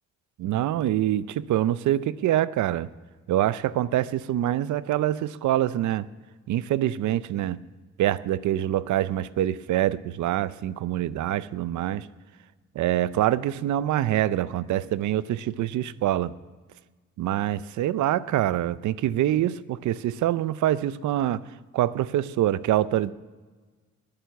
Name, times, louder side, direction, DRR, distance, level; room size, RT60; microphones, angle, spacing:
voice 1, 0.4-2.9 3.3-6.1 6.5-7.6 8.0-12.1 12.8-16.3 17.2-21.4 21.7-23.1, right 12 dB, 75° right, 16 dB, 0.6 m, -25 dB
20.5 x 6.8 x 7.0 m, 1.4 s
cardioid pair, 90°, 30 cm